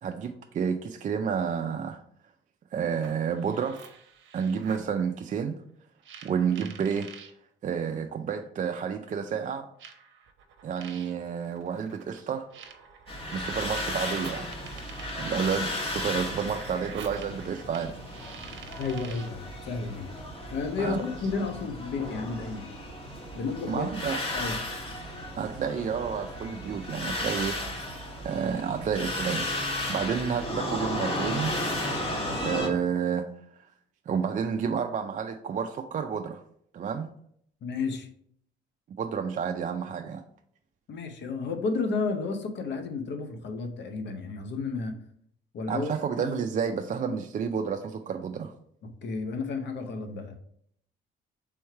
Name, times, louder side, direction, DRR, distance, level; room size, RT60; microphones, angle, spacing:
voice 1, 0.0-2.0 2.7-3.8 4.3-5.6 6.2-7.1 7.6-9.7 10.6-12.5 13.3-14.5 15.1-18.0 20.8-21.0 23.7-24.2 25.4-27.6 28.2-31.5 32.4-33.3 34.1-36.4 36.7-37.1 39.0-40.2 45.7-48.5, right 7 dB, 40° right, 5 dB, 0.4 m, -30 dB
sound 1, 2.9-4.9 6.0-7.3 8.4-8.5 9.8-19.4, right 6 dB, 70° right, 0.7 m, -48 dB
sound 2, 13.1-32.7, left 1 dB, 30° left, 1.3 m, -34 dB
voice 2, 18.8-20.1 20.5-22.8 23.3-23.9 24.3-24.5 37.6-38.1 40.9-45.0 45.5-45.9 47.0-47.2 48.8-50.4, left 4 dB, 65° left, 6 dB, 0.8 m, -32 dB
3.5 x 3.2 x 4.4 m, 0.67 s
cardioid pair, 90°, 20 cm